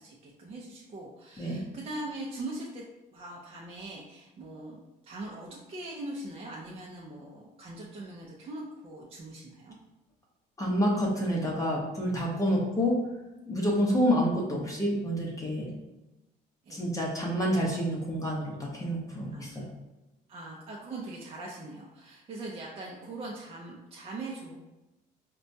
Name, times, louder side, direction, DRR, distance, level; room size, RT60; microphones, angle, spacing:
voice 1, 0.0-2.8 3.1-4.8 5.0-9.8 12.4-12.6 13.6-13.7 16.6-16.8 19.3-19.6 20.3-24.6, right 2 dB, 35° right, -3 dB, 0.5 m, -41 dB
voice 2, 10.6-13.0 13.5-15.7 16.7-19.7, equal, 20° left, -3 dB, 0.7 m, -28 dB
4.2 x 2.2 x 2.7 m, 0.99 s
cardioid pair, 110°, 17 cm